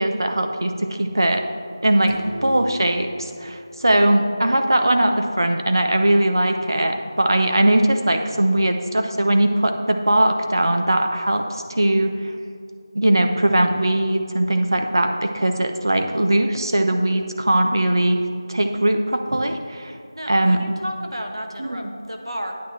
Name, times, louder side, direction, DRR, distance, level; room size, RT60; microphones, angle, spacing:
voice 1, 0.0-1.4 1.8-12.3 12.9-18.2 18.5-20.0 20.3-20.6 21.6-21.8, right 1 dB, 60° right, 5 dB, 0.9 m, -20 dB
sound 1, 2.1-4.8, equal, 35° left, 1.3 m, -38 dB
voice 2, 20.1-22.6, equal, 85° right, 3 dB, 1.3 m, -32 dB
9.2 x 8.9 x 3.3 m, 2.3 s
figure-of-eight pair, 170°, 2 cm